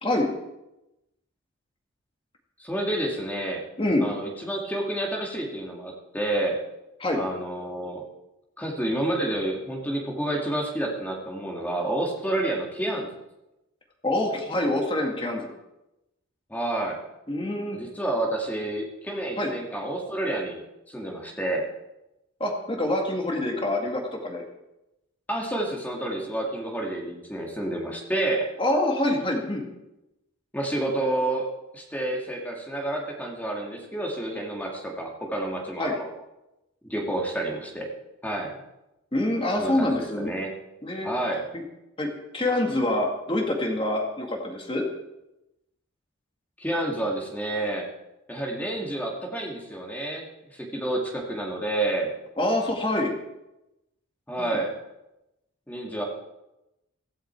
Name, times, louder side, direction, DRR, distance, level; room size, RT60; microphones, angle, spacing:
voice 1, 2.6-3.6 4.0-6.6 7.2-8.0 8.6-13.1 16.5-17.0 17.7-20.6 20.9-21.7 25.3-28.5 30.5-31.5 31.7-36.1 36.8-37.9 38.2-38.6 39.6-40.5 41.0-41.4 46.6-47.9 48.3-52.1 54.3-54.7 55.7-56.0, right 1 dB, 5° left, 0 dB, 2.2 m, -29 dB
voice 2, 3.8-4.1 7.0-7.2 14.0-15.5 17.3-17.8 19.4-19.5 22.4-24.4 28.6-29.7 35.8-35.9 39.1-40.3 40.8-41.1 41.5-41.6 42.0-42.1 42.3-44.9 52.4-53.1 54.4-54.6, left 1 dB, 25° left, 1 dB, 1.9 m, -26 dB
16.0 x 14.5 x 4.6 m, 0.93 s
head